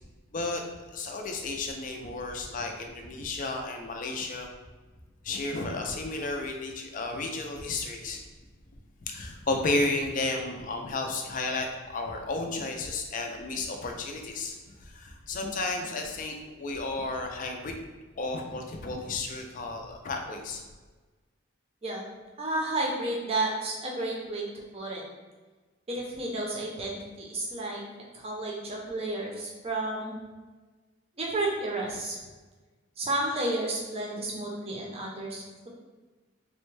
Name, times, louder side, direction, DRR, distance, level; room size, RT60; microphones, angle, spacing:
voice 1, 0.9-4.5 5.2-8.2 9.1-14.5 14.8-17.7 18.2-20.6, left 2 dB, 40° left, 3 dB, 0.4 m, -32 dB
voice 2, 22.4-24.4 24.7-25.0 25.9-27.8 28.1-30.1 31.2-32.2 33.0-35.7, right 2 dB, 30° right, -2 dB, 0.6 m, -31 dB
3.4 x 2.1 x 3.2 m, 1.3 s
head